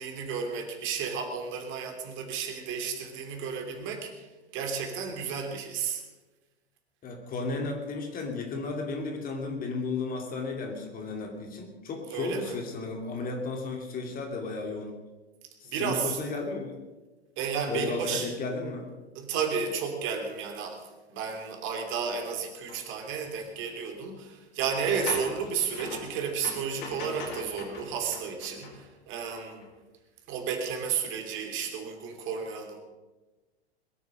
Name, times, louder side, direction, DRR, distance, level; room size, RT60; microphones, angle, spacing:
voice 1, 0.0-6.0 12.1-12.6 15.6-16.2 17.4-18.3 19.1-29.7 30.3-32.8, right 6 dB, 35° right, 3 dB, 3.0 m, -32 dB
voice 2, 7.0-15.0 15.6-16.8 17.7-18.9, left 3 dB, 25° left, 3 dB, 2.8 m, -34 dB
sound 1, 22.7-22.8 23.3-23.4 24.7-29.2 29.6-29.7, left 3 dB, 55° left, 4.5 m, -41 dB
21.5 x 9.4 x 6.5 m, 1.2 s
figure-of-eight pair, 95°, 33 cm